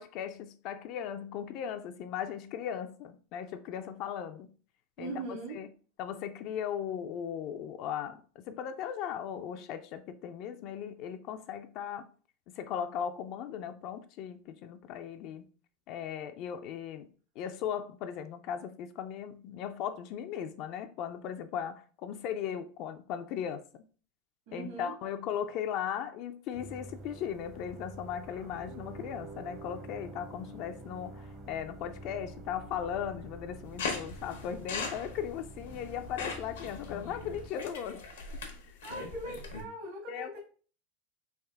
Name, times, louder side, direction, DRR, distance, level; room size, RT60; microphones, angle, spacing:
voice 1, 0.0-4.5 5.0-5.1 5.5-5.7 6.0-12.1 12.5-15.5 15.9-17.1 17.4-23.8 24.5-38.0 40.1-40.4, left 9 dB, 55° left, 0.3 m, -37 dB
voice 2, 5.0-5.6 24.5-24.9 38.8-40.4, right 2 dB, 65° right, 1.5 m, -40 dB
sound 1, 26.5-37.5, right 2 dB, 45° right, 0.8 m, -47 dB
sound 2, 33.8-39.6, left 4 dB, 85° left, 0.9 m, -40 dB
3.5 x 2.5 x 3.4 m
hypercardioid pair, 110°, 0 cm